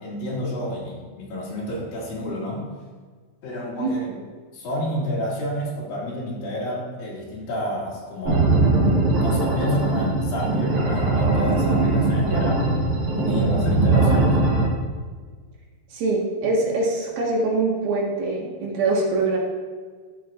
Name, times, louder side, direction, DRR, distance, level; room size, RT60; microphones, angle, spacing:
voice 1, 0.0-2.7 3.4-4.0 4.5-8.5 9.2-12.6 13.1-14.4, equal, 70° left, -5 dB, 3.8 m, -30 dB
sound 1, 8.3-14.7, right 2 dB, 55° right, 3.5 m, -20 dB
voice 2, 15.9-19.4, right 3 dB, 75° right, -3 dB, 3.3 m, -23 dB
12.5 x 6.7 x 2.5 m, 1.5 s
omnidirectional pair, 4.3 m